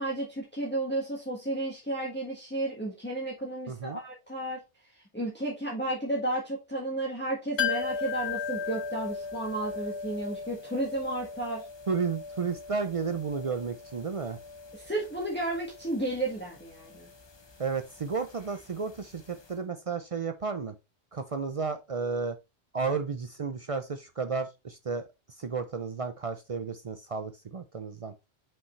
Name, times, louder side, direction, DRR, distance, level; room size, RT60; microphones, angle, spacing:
voice 1, 0.0-4.6 4.9-11.6 14.7-17.1, right 1 dB, 10° left, 1.6 m, -33 dB
voice 2, 3.7-4.0 11.9-14.4 17.6-20.7 21.1-22.4 22.7-25.0 25.4-28.1, right 5 dB, 50° right, 0.4 m, -32 dB
sound 1, 7.6-19.2 19.4-19.5, left 6 dB, 30° left, 0.6 m, -38 dB
5.6 x 5.3 x 3.1 m
omnidirectional pair, 1.2 m